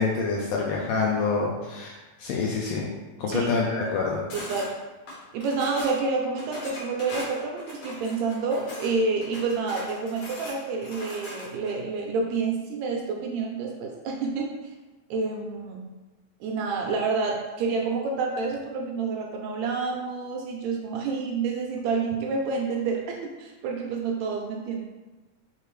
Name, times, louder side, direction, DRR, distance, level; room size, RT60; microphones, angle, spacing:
voice 1, 0.0-2.9 3.2-4.2, left 4 dB, 80° left, -2 dB, 1.5 m, -26 dB
sound 1, 4.3-4.7 5.1-6.0 6.4-8.9 9.2-11.7, left 1 dB, 55° left, 1.7 m, -40 dB
voice 2, 4.3-4.7 5.3-14.5 15.1-15.8 16.4-24.8, right 4 dB, 80° right, 0 dB, 1.7 m, -28 dB
4.5 x 3.7 x 3.1 m, 1.2 s
omnidirectional pair, 3.4 m